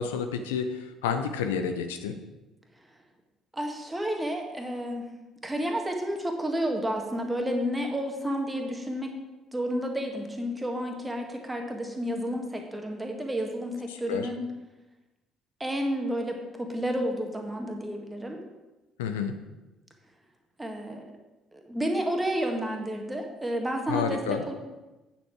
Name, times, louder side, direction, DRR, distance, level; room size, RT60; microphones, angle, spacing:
voice 1, 0.0-2.2 13.9-14.3 19.0-19.3 23.9-24.4, left 6 dB, 75° left, 7 dB, 0.7 m, -30 dB
voice 2, 3.5-5.1 5.4-9.1 9.5-14.4 15.6-18.4 20.6-21.0 21.5-24.2 24.5-24.6, equal, 15° right, 2 dB, 1.8 m, -31 dB
8.9 x 7.1 x 4.7 m, 1.1 s
figure-of-eight pair, 50°, 0 cm